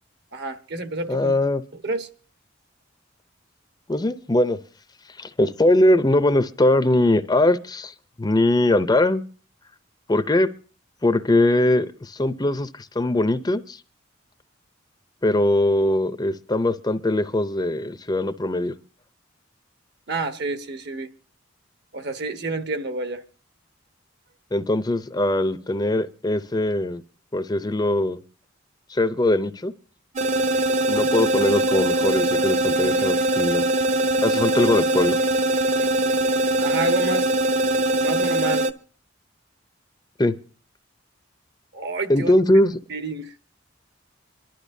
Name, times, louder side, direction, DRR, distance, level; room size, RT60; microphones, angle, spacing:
voice 1, 0.3-1.3 1.7-2.1 20.1-21.1 21.9-23.2 36.6-37.3 38.0-38.7 41.7-42.4 42.7-43.4, right 2 dB, 60° right, 1.3 m, -29 dB
voice 2, 1.1-1.6 3.9-4.6 5.2-7.9 8.2-9.2 10.1-10.5 11.0-13.8 15.2-18.8 24.5-27.0 27.3-28.2 28.9-29.7 30.9-33.6 34.2-35.2 40.2-40.4 42.1-42.7, left 1 dB, 20° left, 0.6 m, -21 dB
sound 1, 30.2-38.7, right 1 dB, 40° right, 0.8 m, -22 dB
25.5 x 12.0 x 2.7 m
head